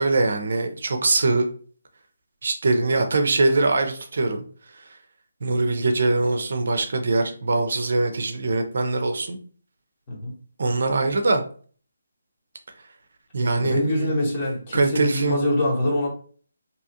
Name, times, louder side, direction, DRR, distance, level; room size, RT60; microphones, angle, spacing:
voice 1, 0.0-1.5 2.4-4.4 5.4-9.4 10.6-11.4 13.3-14.2 14.7-15.4, right 3 dB, 65° right, 6 dB, 0.5 m, -22 dB
voice 2, 13.6-16.1, left 1 dB, 30° left, -4 dB, 1.1 m, -24 dB
2.8 x 2.4 x 2.6 m, 0.43 s
figure-of-eight pair, 155°, 0 cm